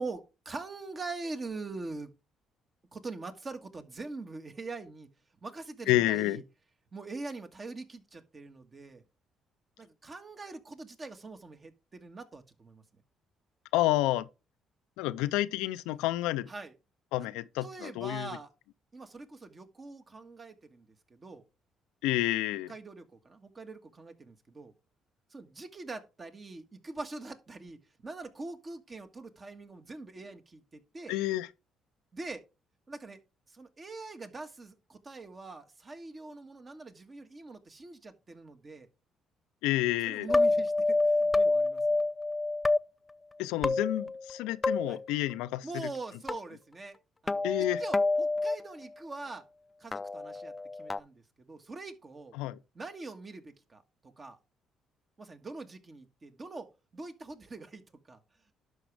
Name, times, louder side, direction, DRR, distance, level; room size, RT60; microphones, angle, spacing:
voice 1, 0.0-2.1 2.9-5.1 5.4-6.4 6.9-9.0 9.8-12.8 16.5-16.7 17.6-18.5 18.9-21.4 22.7-24.7 25.3-31.2 32.1-32.4 32.9-33.2 33.5-38.9 40.1-42.0 44.9-45.0 45.6-47.0 47.2-47.4 47.8-49.4 49.8-50.5 50.8-52.4 52.7-54.4 55.2-56.7 56.9-58.2, right 3 dB, 35° right, 1.6 m, -43 dB
voice 2, 5.9-6.4 13.7-14.3 15.0-16.5 17.1-18.3 22.0-22.7 31.1-31.5 39.6-40.3 43.4-45.9 47.4-47.8 52.3-52.6, left 16 dB, 85° left, 0.4 m, -29 dB
sound 1, 40.3-42.8 43.6-44.4 44.6-45.0 46.3-46.4 47.3-48.6 49.9-51.0, left 2 dB, 25° left, 0.4 m, -27 dB
11.5 x 4.9 x 3.3 m
supercardioid pair, 60°, 0 cm